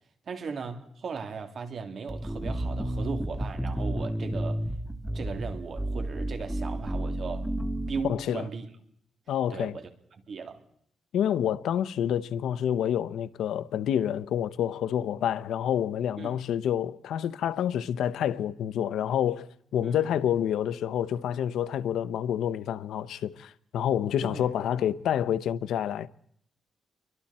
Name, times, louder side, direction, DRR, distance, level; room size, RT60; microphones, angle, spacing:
voice 1, 0.3-4.6 5.1-7.5 7.9-8.7 9.5-10.6 16.2-16.4 19.8-20.1 24.2-24.5, right 5 dB, 45° right, 2.9 m, -37 dB
sound 1, 2.1-8.1, right 1 dB, 5° right, 1.7 m, -31 dB
voice 2, 8.1-8.4 9.3-9.8 11.1-26.1, left 10 dB, 85° left, 0.9 m, -28 dB
29.5 x 24.0 x 4.3 m
wide cardioid pair, 165°, 0 cm